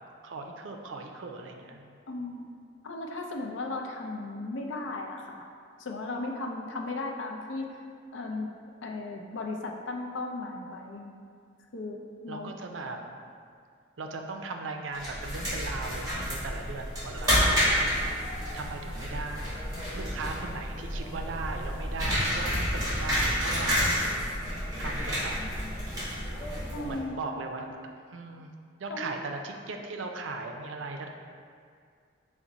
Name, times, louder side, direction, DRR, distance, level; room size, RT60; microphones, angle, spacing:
voice 1, 0.2-2.0 12.3-13.0 14.0-18.1 18.5-19.5 19.9-24.1 24.8-25.4 26.8-27.7 28.1-28.5 28.8-31.1, right 3 dB, 80° right, 4 dB, 0.4 m, -38 dB
voice 2, 2.1-2.5 2.8-5.4 5.8-7.7 8.1-8.5 8.8-11.2 11.7-12.5 26.7-27.6 28.9-29.1, left 2 dB, 75° left, 2 dB, 0.5 m, -36 dB
sound 1, 14.9-27.0, equal, 20° right, 1.5 m, -30 dB
sound 2, 17.1-27.0, left 1 dB, 10° left, 0.6 m, -45 dB
6.0 x 2.1 x 3.9 m, 2.2 s
head